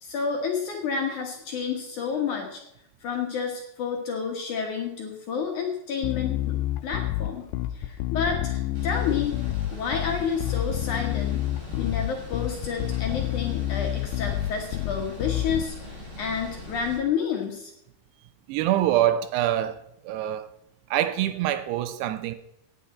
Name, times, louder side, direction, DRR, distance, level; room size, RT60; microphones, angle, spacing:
voice 1, 0.0-2.6 3.0-7.4 7.7-9.4 9.7-11.4 11.8-17.7, left 6 dB, 65° left, 2.1 m, -30 dB
Bass guitar, 6.0-15.6, left 14 dB, 85° left, 2.7 m, -29 dB
sound 1, 8.7-17.0, left 2 dB, 65° right, 8.5 m, -42 dB
voice 2, 18.5-20.5 20.9-22.4, right 12 dB, 80° right, 2.6 m, -25 dB
17.0 x 9.6 x 4.3 m
omnidirectional pair, 5.1 m